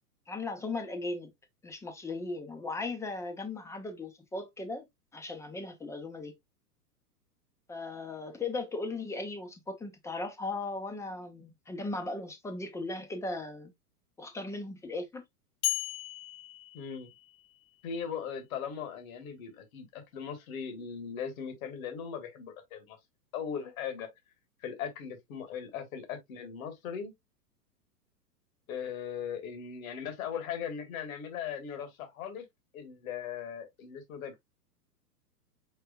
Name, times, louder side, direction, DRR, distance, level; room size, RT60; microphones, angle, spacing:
voice 1, 0.3-1.3 1.6-4.8 5.1-6.3 7.7-13.7 14.2-15.2, left 3 dB, 5° left, 0.6 m, -37 dB
sound 1, 15.6-17.7, left 17 dB, 40° left, 0.9 m, -36 dB
voice 2, 16.7-17.1 17.8-23.0 23.3-24.1 24.6-27.1 28.7-32.4 32.7-34.4, left 7 dB, 60° left, 1.6 m, -39 dB
4.7 x 4.4 x 2.3 m
hypercardioid pair, 115°, 48 cm